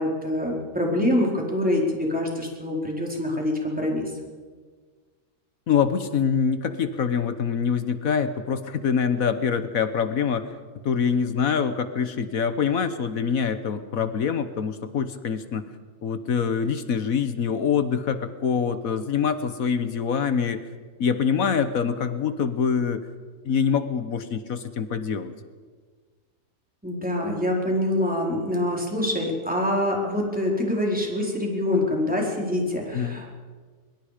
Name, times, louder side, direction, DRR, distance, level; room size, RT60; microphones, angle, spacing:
voice 1, 0.0-4.0 26.8-33.3, left 1 dB, 5° right, -2 dB, 4.3 m, -25 dB
voice 2, 5.7-10.5 10.8-15.6 16.0-20.6 21.0-23.0 23.4-25.3 32.9-33.2, left 6 dB, 65° left, 11 dB, 1.5 m, -25 dB
23.0 x 22.5 x 5.1 m, 1.5 s
omnidirectional pair, 1.6 m